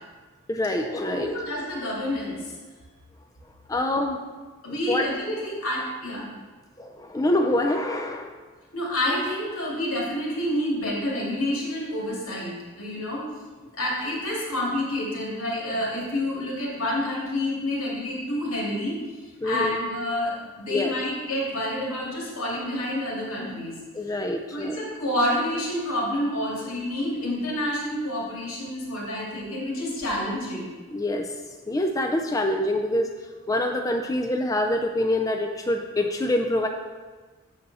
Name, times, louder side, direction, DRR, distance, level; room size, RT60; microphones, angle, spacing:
voice 1, 0.5-1.3 3.7-4.2 4.7-5.1 6.8-8.4 19.4-19.8 20.7-20.9 23.9-24.8 30.9-31.3 31.7-33.1 33.5-36.7, left 1 dB, 15° left, 4 dB, 0.4 m, -25 dB
voice 2, 1.0-2.5 4.6-6.3 8.7-13.2 13.7-19.0 19.4-23.8 24.5-30.7, left 1 dB, 85° left, -4 dB, 2.6 m, -28 dB
7.9 x 6.7 x 4.1 m, 1.3 s
head